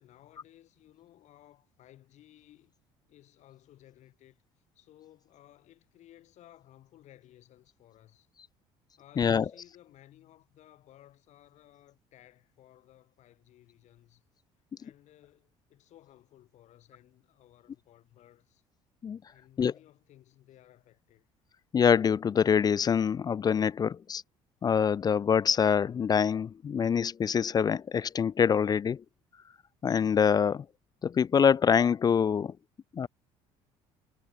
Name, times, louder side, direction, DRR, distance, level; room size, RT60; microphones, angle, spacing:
voice 1, 0.0-2.7 3.1-4.4 4.7-8.3 9.0-14.2 14.8-18.6 19.2-21.3, left 13 dB, 65° left, 5.0 m, -58 dB
voice 2, 9.2-9.5 19.0-19.2 19.6-19.7 21.7-24.2 24.6-29.0 29.8-30.7 31.0-32.6 32.9-33.1, left 7 dB, 30° left, 0.4 m, -25 dB
supercardioid pair, 85°, 13 cm